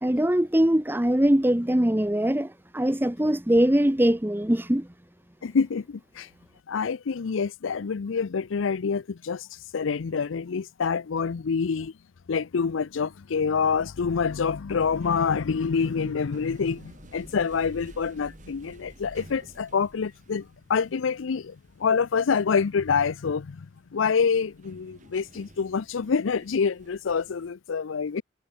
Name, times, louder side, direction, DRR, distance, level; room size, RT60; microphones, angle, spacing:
voice 1, 0.0-4.9, right 1 dB, 10° right, 0.8 m, -22 dB
voice 2, 5.4-6.3 6.7-11.9 12.3-28.2, left 5 dB, 85° left, 0.5 m, -27 dB
sound 1, 14.8-27.5, right 1 dB, 40° right, 4.3 m, -51 dB
head